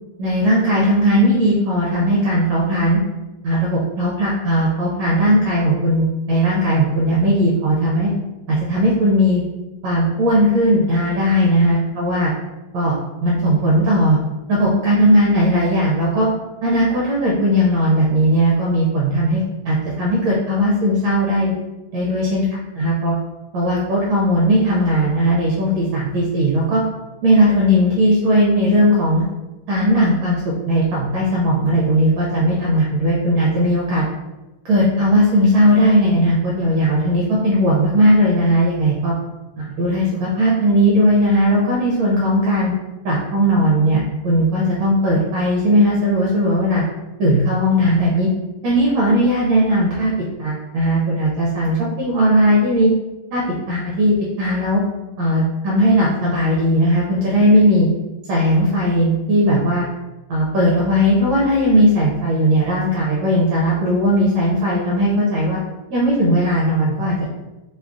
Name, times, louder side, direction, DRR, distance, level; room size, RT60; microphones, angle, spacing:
voice 1, 0.2-3.0 3.4-8.1 8.5-9.4 9.8-12.3 12.7-13.0 13.2-14.2 14.5-16.3 16.6-21.5 21.9-22.5 22.8-23.1 23.5-26.8 27.2-29.2 29.7-34.1 34.6-39.1 39.6-42.7 43.0-46.8 47.2-48.3 48.6-50.1 50.4-52.9 53.3-54.8 55.2-57.9 58.3-59.8 60.3-65.6 65.9-67.2, equal, 75° right, -5 dB, 1.3 m, -17 dB
3.3 x 2.2 x 2.5 m, 1.1 s
omnidirectional pair, 2.2 m